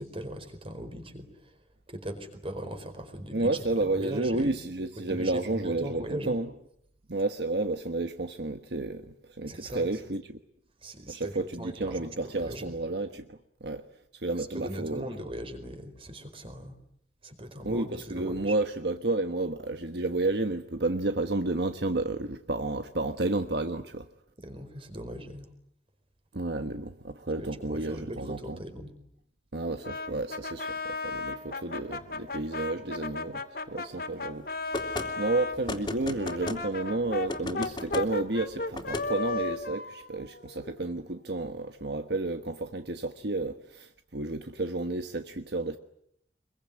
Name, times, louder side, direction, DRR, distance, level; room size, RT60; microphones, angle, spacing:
voice 1, 0.0-1.5 1.9-4.5 5.0-6.3 9.5-9.9 10.8-12.7 14.4-16.7 17.2-18.5 24.4-25.5 27.4-28.9, equal, 30° right, 4.6 m, -39 dB
voice 2, 3.3-6.5 7.1-10.4 11.1-13.8 14.2-15.0 17.6-24.1 26.3-28.6 29.5-34.5 35.2-45.8, right 2 dB, 65° right, 1.3 m, -31 dB
Brass instrument, 29.8-35.6 36.2-41.0, left 3 dB, 55° left, 2.5 m, -35 dB
sound 1, 34.7-35.1 35.7-36.6 37.3-38.1 38.7-39.1, left 2 dB, 25° left, 3.0 m, -34 dB
25.0 x 22.5 x 9.6 m
head